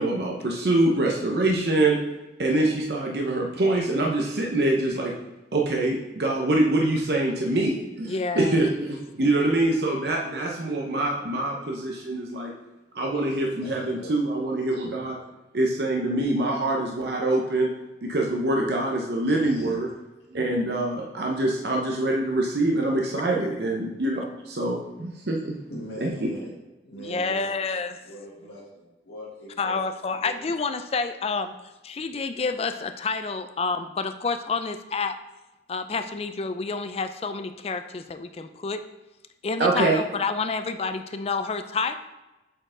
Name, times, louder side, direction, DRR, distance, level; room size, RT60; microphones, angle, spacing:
voice 1, 0.0-2.0 2.4-5.1 5.5-12.5 12.9-15.2 15.5-17.7 18.0-19.9 20.3-25.5 26.0-26.4 39.6-40.0, right 2 dB, 60° right, 0.7 m, -25 dB
voice 2, 8.1-8.6 27.0-28.0 29.6-31.5 31.8-35.2 35.7-38.8 39.4-42.0, left 4 dB, 35° left, 0.4 m, -29 dB
voice 3, 13.6-14.1 19.4-19.8 25.7-26.5 26.8-27.5 28.0-29.7 30.1-30.4, equal, 80° left, 1.6 m, -41 dB
7.7 x 4.4 x 3.8 m
head